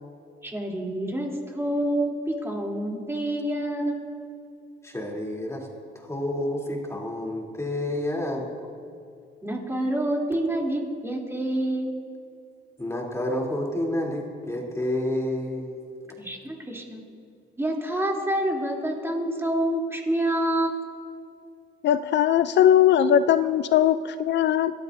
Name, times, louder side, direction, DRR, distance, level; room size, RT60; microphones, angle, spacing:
voice 1, 0.4-4.0 9.4-12.0 16.2-17.0 17.6-20.8, right 1 dB, 10° right, -2 dB, 3.1 m, -27 dB
voice 2, 4.8-5.7 5.9-8.5 12.8-15.7, left 1 dB, 15° left, -1 dB, 3.2 m, -29 dB
voice 3, 21.8-24.7, left 10 dB, 65° left, 13 dB, 0.4 m, -20 dB
27.0 x 13.5 x 2.7 m, 2.4 s
cardioid pair, 90°, 20 cm